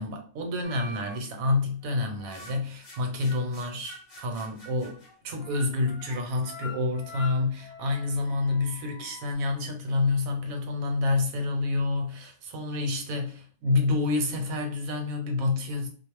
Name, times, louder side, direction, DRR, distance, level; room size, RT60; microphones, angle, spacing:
voice 1, 0.0-15.9, left 3 dB, 80° right, 1.0 m, -28 dB
sound 1, 0.6-1.3 1.8-9.3, left 2 dB, 45° left, 0.6 m, -45 dB
2.4 x 2.0 x 3.0 m
omnidirectional pair, 1.5 m